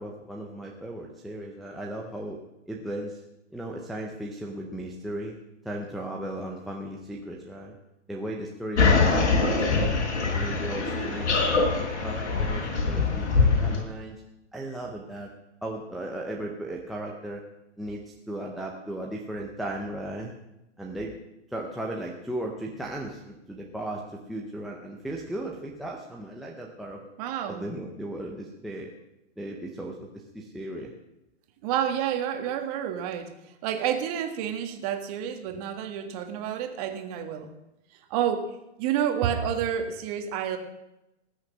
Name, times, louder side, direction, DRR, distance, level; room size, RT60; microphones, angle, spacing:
voice 1, 0.0-2.4 2.7-3.2 3.5-5.4 5.6-7.8 8.1-10.0 10.3-14.2 14.5-15.3 15.6-17.4 17.8-20.3 20.8-21.2 21.5-27.0 27.5-28.9 29.4-30.9, right 1 dB, ahead, -2 dB, 0.5 m, -36 dB
sound 1, 8.8-13.8, left 4 dB, 70° left, 5.0 m, -23 dB
voice 2, 27.2-27.6 31.6-33.3 33.6-37.5 38.1-40.6, right 9 dB, 30° right, 6 dB, 1.7 m, -29 dB
19.0 x 6.4 x 7.4 m, 0.91 s
hypercardioid pair, 150°, 35 cm